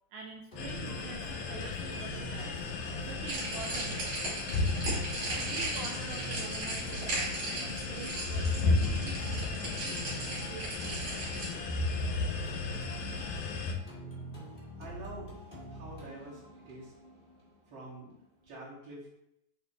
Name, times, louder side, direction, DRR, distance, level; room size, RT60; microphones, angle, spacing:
voice 1, 0.1-2.6 3.0-4.2 5.3-10.1 10.5-11.3, right 5 dB, 80° right, -1 dB, 2.2 m, -46 dB
sound 1, 0.5-18.5, equal, 40° left, 0.8 m, -45 dB
sound 2, 0.6-13.7, left 3 dB, 85° left, 2.5 m, -34 dB
sound 3, 3.3-11.5, right 2 dB, 55° right, 3.4 m, -37 dB
voice 2, 14.8-15.3 15.7-16.9 17.7-19.1, right 1 dB, 35° right, -8 dB, 2.8 m, -47 dB
8.2 x 3.8 x 3.5 m, 0.80 s
omnidirectional pair, 3.9 m